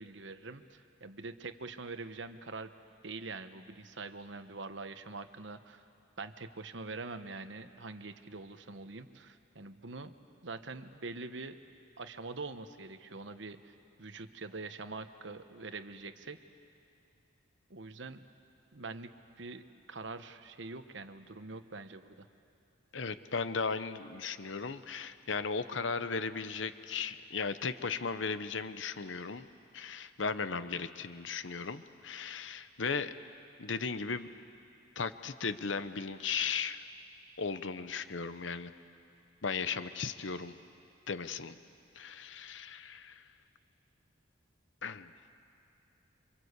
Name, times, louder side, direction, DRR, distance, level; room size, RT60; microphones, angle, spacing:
voice 1, 0.0-2.7 3.0-5.8 6.2-10.1 10.4-11.6 12.0-16.4 17.7-18.2 18.7-19.1 19.4-22.3, right 3 dB, 65° right, 10 dB, 1.1 m, -44 dB
voice 2, 22.9-29.5 29.7-33.1 33.6-34.3 35.0-36.8 37.4-38.7 39.4-40.5 41.1-41.6 41.9-43.2 44.8-45.1, left 5 dB, 70° left, 12 dB, 0.9 m, -36 dB
27.5 x 25.5 x 8.2 m, 2.6 s
head